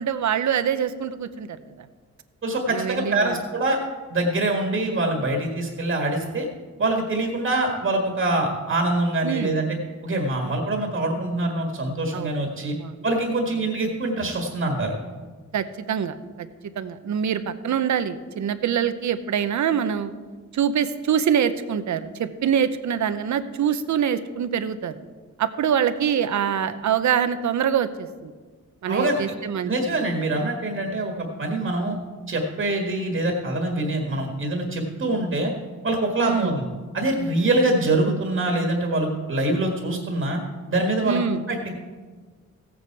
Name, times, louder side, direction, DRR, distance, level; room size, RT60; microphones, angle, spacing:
voice 1, 0.0-1.6 2.7-3.4 9.2-9.5 12.1-12.3 12.8-13.0 15.5-16.5 16.8-20.1 20.5-25.0 25.4-28.3 28.8-29.7 36.2-36.6 41.0-41.4, right 8 dB, 70° right, 11 dB, 0.7 m, -24 dB
voice 2, 2.4-3.8 4.1-6.5 6.8-9.8 10.0-12.8 13.0-15.0 28.9-29.4 29.7-32.0 32.3-35.5 35.8-36.7 36.9-40.4 40.7-41.6, right 2 dB, 45° right, 2 dB, 1.6 m, -24 dB
16.0 x 8.7 x 4.6 m, 1.4 s
wide cardioid pair, 145°, 30 cm